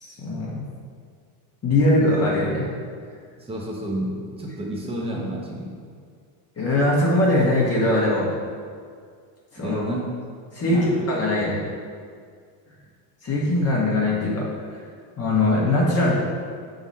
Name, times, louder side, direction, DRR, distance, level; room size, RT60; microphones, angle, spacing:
voice 1, 0.0-0.6 1.6-2.7 6.6-8.3 9.5-9.8 10.5-11.6 13.2-14.8 15.2-16.1, left 1 dB, 30° left, -5 dB, 1.3 m, -21 dB
voice 2, 3.4-5.7 9.6-10.1 10.6-11.1 11.4-11.5, right 1 dB, 10° right, -2 dB, 1.0 m, -30 dB
6.0 x 3.9 x 4.1 m, 2.1 s
supercardioid pair, 115°, 50 cm